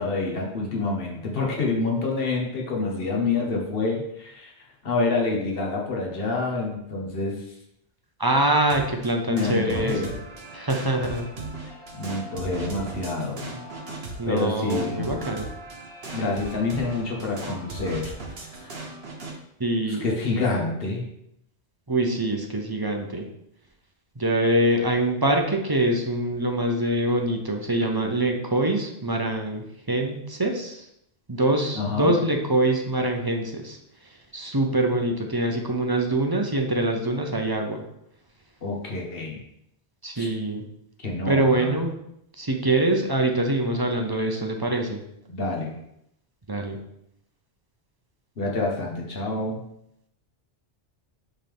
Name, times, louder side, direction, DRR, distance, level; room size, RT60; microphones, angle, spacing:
voice 1, 0.0-4.5 4.8-7.5 9.3-10.1 12.0-13.6 14.3-15.2 16.1-18.1 18.4-18.8 19.9-21.0 31.7-32.1 38.6-39.4 40.1-40.3 41.0-41.7 45.3-45.8 48.4-49.6, left 3 dB, 55° left, -1 dB, 1.5 m, -27 dB
voice 2, 8.2-10.1 10.5-11.2 14.2-15.5 19.6-20.0 21.9-23.3 24.2-30.9 31.3-33.8 34.3-37.8 40.0-40.6 41.3-41.9 42.4-45.0 46.5-46.8, right 1 dB, 25° right, 2 dB, 0.6 m, -24 dB
sound 1, 8.7-19.4, right 3 dB, 60° right, 1.3 m, -38 dB
7.9 x 3.8 x 3.5 m, 0.78 s
omnidirectional pair, 1.2 m